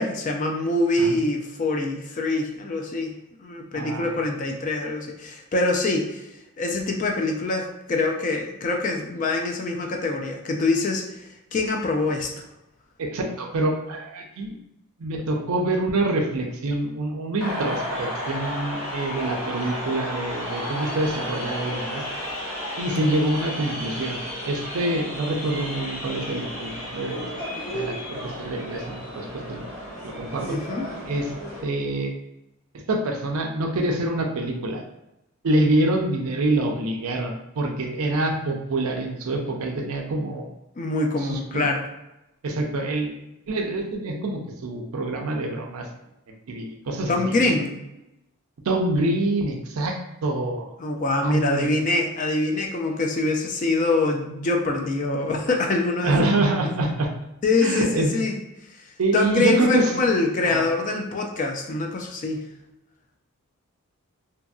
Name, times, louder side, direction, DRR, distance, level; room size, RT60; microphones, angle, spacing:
voice 1, 0.0-3.1 3.4-6.2 6.6-11.0 11.5-12.3 30.4-30.9 40.8-41.8 47.1-47.8 50.8-56.3 57.4-58.3 59.1-62.4, left 2 dB, 35° left, 2 dB, 0.3 m, -24 dB
voice 2, 3.7-4.2 13.0-14.6 15.0-22.0 22.8-27.2 27.7-29.6 30.0-30.6 31.1-31.3 31.6-32.1 32.7-34.8 35.4-40.5 41.2-41.7 42.4-43.1 43.5-45.9 46.3-47.4 48.7-50.7 51.2-51.8 56.0-57.1 57.6-58.1 59.0-59.9 60.4-60.6, right 2 dB, 75° right, 3 dB, 0.5 m, -26 dB
sound 1, 17.4-31.6, equal, 70° left, 1.0 m, -33 dB
2.7 x 2.6 x 2.3 m, 0.90 s
head